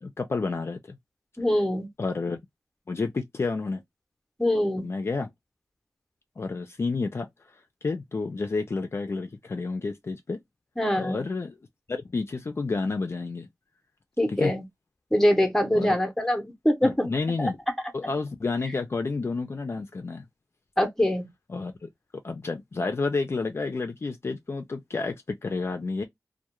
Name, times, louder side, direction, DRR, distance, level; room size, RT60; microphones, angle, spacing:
voice 1, 0.0-1.0 2.0-2.4 2.9-3.8 4.8-5.3 6.4-7.3 7.8-10.4 10.9-11.6 11.9-13.5 14.3-14.6 15.7-16.0 16.8-17.6 17.9-20.3 21.5-21.9 22.2-26.0, left 3 dB, 45° left, 0.4 m, -30 dB
voice 2, 1.4-1.9 4.4-4.9 10.8-11.2 14.2-14.6 15.1-17.1 17.4-17.5 20.8-21.3, left 1 dB, 5° left, 0.7 m, -24 dB
2.2 x 2.1 x 2.9 m
wide cardioid pair, 105°, 6 cm